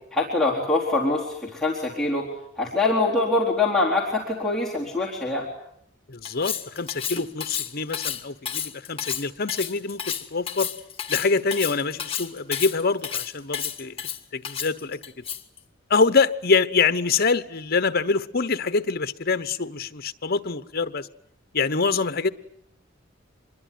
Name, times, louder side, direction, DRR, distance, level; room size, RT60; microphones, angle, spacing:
voice 1, 0.1-2.2 2.6-5.5, left 2 dB, ahead, -5 dB, 3.9 m, -24 dB
voice 2, 6.1-10.7 11.1-14.0 14.3-15.0 15.9-21.1 21.5-22.3, left 4 dB, 50° left, 12 dB, 1.1 m, -25 dB
Cutlery silverware, 6.3-15.6, left 9 dB, 30° left, 1.8 m, -31 dB
25.5 x 22.0 x 9.3 m, 0.73 s
head